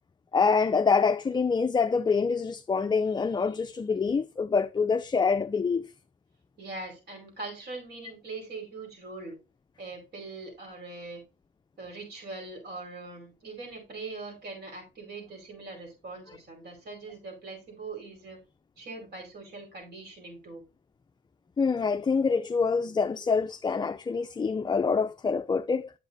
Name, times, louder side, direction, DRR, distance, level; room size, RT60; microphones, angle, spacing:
voice 1, 0.3-5.9 21.6-25.9, left 5 dB, 20° left, 0.4 m, -26 dB
voice 2, 6.6-9.4 9.8-11.2 11.8-18.4 18.8-20.6, right 3 dB, 55° right, 5.1 m, -41 dB
9.3 x 7.9 x 2.7 m
cardioid pair, 90°, 20 cm